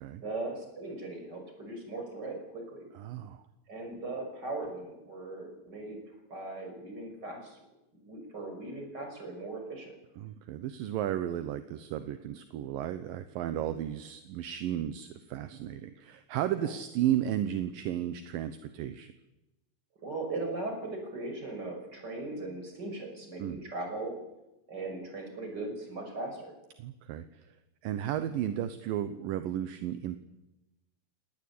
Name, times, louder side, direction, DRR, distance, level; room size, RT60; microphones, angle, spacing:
voice 1, 0.2-2.9 3.7-6.0 6.3-7.6 7.9-9.9 16.5-16.7 20.0-24.1 24.7-26.5, right 2 dB, 25° right, 4 dB, 6.3 m, -39 dB
voice 2, 3.0-3.4 10.2-19.1 23.4-23.6 26.8-27.5 27.8-30.2, right 11 dB, 75° right, 10 dB, 2.6 m, -34 dB
24.5 x 18.5 x 8.6 m, 0.97 s
omnidirectional pair, 4.2 m